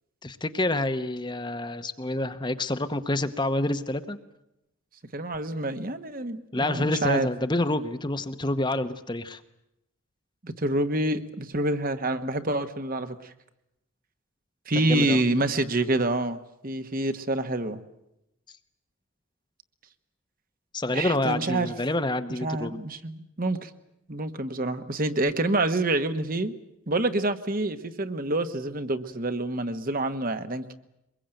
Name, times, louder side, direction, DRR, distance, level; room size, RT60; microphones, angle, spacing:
voice 1, 0.2-4.2 6.5-9.4 14.8-15.2 20.7-22.8, left 1 dB, 20° left, 10 dB, 1.0 m, -28 dB
voice 2, 5.1-7.3 10.4-13.3 14.7-17.8 20.9-21.7 22.3-23.7 24.1-26.5 26.9-30.7, right 2 dB, 40° right, 9 dB, 1.4 m, -27 dB
24.0 x 21.5 x 9.0 m, 0.84 s
head